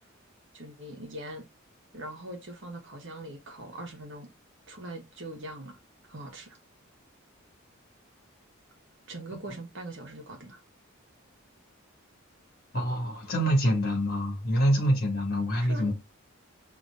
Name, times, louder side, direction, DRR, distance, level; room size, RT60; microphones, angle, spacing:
voice 1, 0.5-1.5 1.9-4.3 4.7-5.8 6.1-6.6 9.1-10.6 15.6-15.9, right 1 dB, 60° right, 1.2 m, -41 dB
voice 2, 12.7-15.9, equal, 45° left, 1.7 m, -26 dB
5.4 x 2.9 x 2.4 m
head